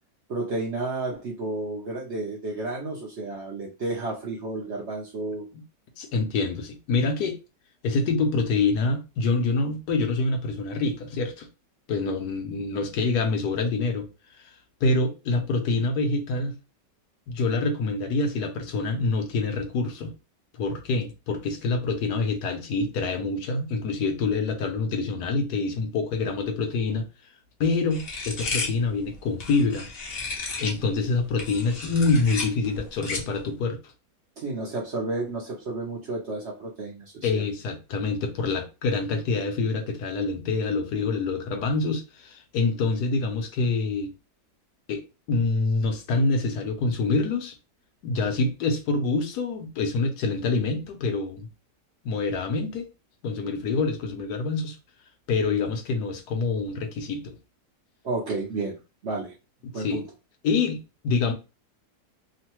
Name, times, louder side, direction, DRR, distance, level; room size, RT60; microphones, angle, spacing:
voice 1, 0.3-5.4 34.4-37.4 58.0-59.3 59.7-60.0, right 2 dB, 60° right, 0.7 m, -31 dB
voice 2, 6.0-7.4 7.8-11.5 11.9-14.1 14.4-14.5 14.8-16.6 17.3-20.1 20.6-27.1 27.6-29.9 30.6-33.8 37.2-44.1 44.9-47.6 48.0-51.5 52.0-52.9 53.2-54.8 55.3-57.3 59.6-60.0 60.4-60.8 61.0-61.3, left 3 dB, 75° left, 1.2 m, -26 dB
sound 1, 27.9-30.8 31.3-33.4, left 3 dB, 50° left, 0.7 m, -33 dB
3.1 x 2.1 x 2.9 m
omnidirectional pair, 1.8 m